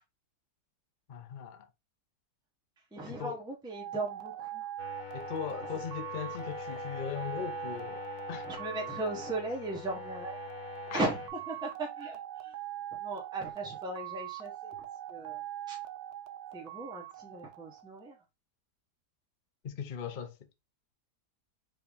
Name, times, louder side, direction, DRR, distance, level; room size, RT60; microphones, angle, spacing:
voice 1, 1.1-1.7 3.1-3.4 5.1-8.5 10.9-11.1 19.6-20.5, left 7 dB, 45° left, 0.6 m, -39 dB
voice 2, 2.9-4.7 8.4-10.4 10.9-12.5 13.0-14.8 15.1-15.4 15.7-15.8 16.5-18.2, right 2 dB, 5° right, 0.9 m, -37 dB
sound 1, 3.7-18.2, right 13 dB, 70° right, 1.1 m, -42 dB
sound 2, 4.8-11.3, left 8 dB, 70° left, 1.6 m, -44 dB
4.8 x 3.0 x 3.4 m
omnidirectional pair, 1.8 m